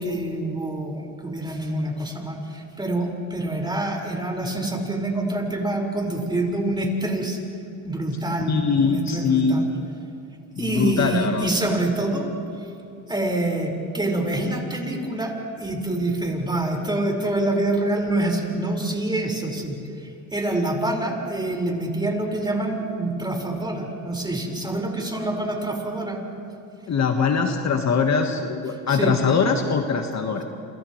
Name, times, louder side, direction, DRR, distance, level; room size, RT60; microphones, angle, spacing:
voice 1, 0.0-7.4 7.8-9.7 10.6-12.3 13.1-26.2 28.9-29.1, right 1 dB, 10° right, 0 dB, 5.2 m, -26 dB
voice 2, 8.5-9.7 10.6-11.5 26.9-30.4, left 5 dB, 45° left, 4 dB, 1.6 m, -22 dB
29.5 x 28.0 x 3.2 m, 2.7 s
supercardioid pair, 80°, 37 cm